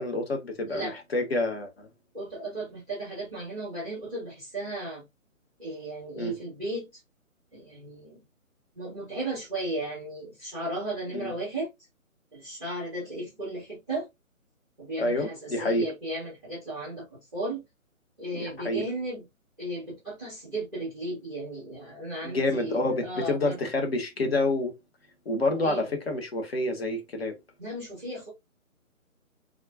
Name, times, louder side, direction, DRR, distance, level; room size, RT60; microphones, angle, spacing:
voice 1, 0.0-1.9 6.2-6.4 11.1-11.3 15.0-15.9 18.3-18.8 22.2-24.7 25.2-27.4, left 2 dB, 45° left, 1.2 m, -28 dB
voice 2, 2.1-5.0 5.6-6.9 7.5-8.2 8.8-11.7 12.3-14.1 14.8-17.6 18.2-19.2 19.6-23.6 25.5-25.8 27.6-28.3, right 1 dB, 5° left, 0.7 m, -35 dB
4.2 x 2.4 x 2.4 m
figure-of-eight pair, 145°, 42 cm